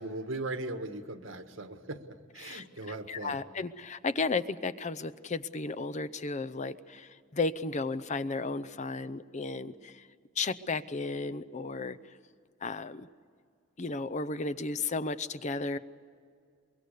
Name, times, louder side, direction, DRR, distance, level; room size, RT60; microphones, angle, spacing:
voice 1, 0.0-2.0 2.3-3.4, right 2 dB, 90° right, 7 dB, 1.6 m, -38 dB
voice 2, 3.1-10.1 10.4-12.0 12.6-13.1 13.8-15.8, left 3 dB, 40° left, 13 dB, 0.7 m, -34 dB
23.5 x 22.5 x 6.8 m, 2.2 s
head